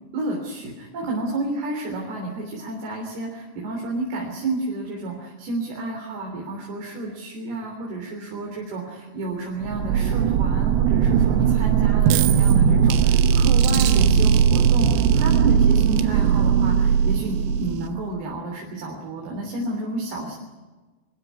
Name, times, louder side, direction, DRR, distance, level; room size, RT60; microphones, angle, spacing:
voice 1, 0.1-20.4, right 2 dB, 65° right, -1 dB, 5.4 m, -31 dB
sound 1, 9.6-18.1, right 7 dB, 90° right, 3.4 m, -18 dB
25.0 x 15.5 x 9.6 m, 1.2 s
omnidirectional pair, 4.9 m